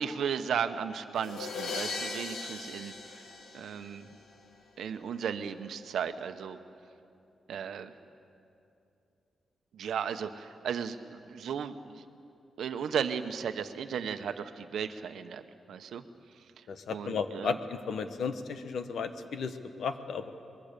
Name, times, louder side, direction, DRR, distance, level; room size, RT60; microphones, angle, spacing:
voice 1, 0.0-3.2 3.5-4.1 4.8-6.6 7.5-7.9 9.7-12.0 12.6-15.4 15.7-16.0 16.9-17.6, right 7 dB, 85° right, 9 dB, 1.0 m, -35 dB
sound 1, 1.2-4.1, left 4 dB, 90° left, 2.2 m, -38 dB
voice 2, 16.7-20.3, left 5 dB, 70° left, 9 dB, 1.2 m, -34 dB
24.5 x 21.5 x 6.8 m, 2.6 s
wide cardioid pair, 160°, 0 cm